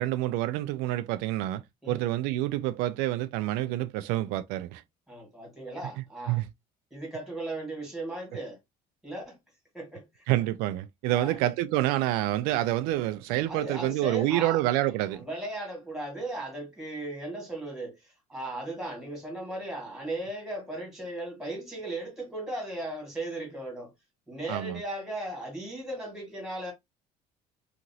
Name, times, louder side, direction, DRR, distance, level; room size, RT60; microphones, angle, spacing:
voice 1, 0.0-4.8 6.0-6.5 10.3-15.2 24.5-24.8, right 15 dB, 85° right, 0.4 m, -28 dB
voice 2, 5.1-6.4 6.9-8.6 9.0-9.4 9.7-10.1 11.1-11.4 13.5-14.6 15.1-23.9 24.3-26.7, right 1 dB, 5° right, 1.8 m, -37 dB
2.9 x 2.5 x 2.7 m
cardioid pair, 145°, 15 cm